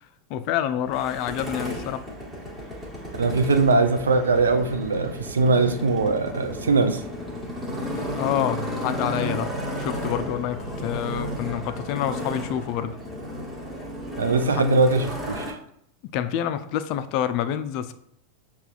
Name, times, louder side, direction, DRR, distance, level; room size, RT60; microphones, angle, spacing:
voice 1, 0.3-2.0 7.9-13.0 14.6-14.7 16.0-17.9, left 10 dB, 50° left, 0.3 m, -28 dB
Motorcycle, 0.9-15.5, left 1 dB, 10° right, 1.1 m, -33 dB
voice 2, 3.1-7.0 14.2-15.6, right 3 dB, 75° right, 0.4 m, -21 dB
6.6 x 2.4 x 2.3 m
figure-of-eight pair, 90°, 0 cm